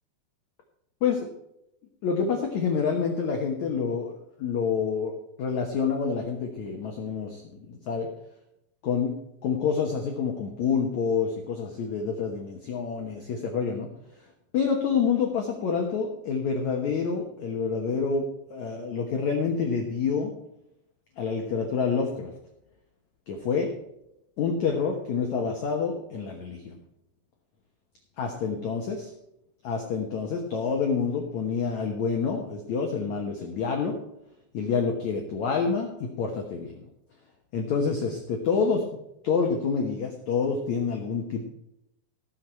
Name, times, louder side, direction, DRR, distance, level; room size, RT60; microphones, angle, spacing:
voice 1, 2.0-5.1 5.4-8.1 8.8-9.2 9.4-13.9 14.1-14.3 14.5-18.2 18.5-20.3 21.2-22.3 23.3-23.7 24.4-26.8 28.2-29.1 29.6-34.0 34.5-36.8 37.5-39.0 39.2-41.4, left 5 dB, 85° left, 2 dB, 1.6 m, -27 dB
18.0 x 6.7 x 4.4 m, 0.84 s
omnidirectional pair, 5.3 m